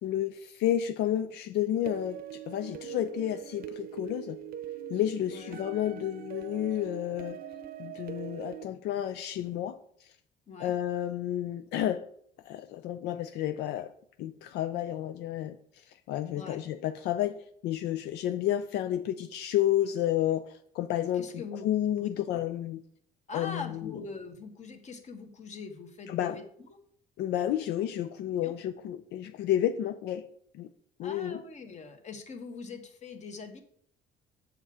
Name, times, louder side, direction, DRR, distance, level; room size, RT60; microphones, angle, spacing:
voice 1, 0.0-4.4 4.9-7.4 7.8-10.2 10.6-12.0 12.4-13.9 14.2-22.8 23.3-23.9 26.1-26.4 27.2-30.3 30.5-30.7 31.0-31.4, left 11 dB, 80° left, 0.5 m, -31 dB
sound 1, 1.9-8.6, right 10 dB, 60° right, 0.7 m, -42 dB
voice 2, 21.1-21.7 22.0-22.1 23.3-26.4 28.4-28.6 31.0-33.6, left 4 dB, 45° left, 1.5 m, -42 dB
7.9 x 7.2 x 4.9 m
cardioid pair, 110°, 17 cm